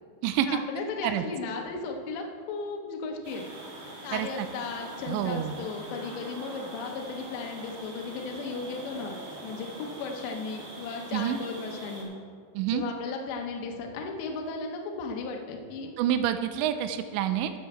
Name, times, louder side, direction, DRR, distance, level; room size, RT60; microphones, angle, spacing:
voice 1, 0.5-3.5 4.0-12.1 12.7-16.0, left 4 dB, 75° left, 2 dB, 3.0 m, -35 dB
sound 1, 3.2-12.0, right 2 dB, 55° right, 1.4 m, -43 dB
voice 2, 4.1-4.5 5.1-5.6 11.1-11.4 12.5-12.8 16.0-17.5, right 11 dB, 85° right, 10 dB, 2.7 m, -28 dB
13.5 x 7.4 x 4.2 m, 2.1 s
omnidirectional pair, 5.2 m